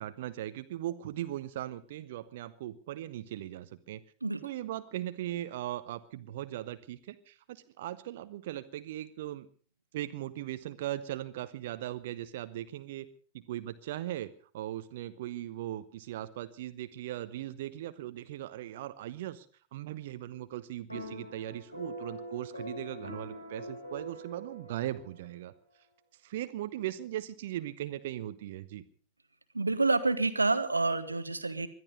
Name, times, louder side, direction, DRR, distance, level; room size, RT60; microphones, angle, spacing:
voice 1, 0.0-4.0 4.4-9.5 9.9-13.1 13.3-19.5 19.7-25.5 26.2-28.8, right 13 dB, 55° right, 12 dB, 1.1 m, -39 dB
sound 1, 20.9-25.4, equal, 85° left, 7.9 m, -43 dB
voice 2, 29.5-31.7, right 3 dB, 80° right, 12 dB, 1.4 m, -28 dB
21.0 x 13.0 x 5.3 m, 0.43 s
figure-of-eight pair, 90°, 0 cm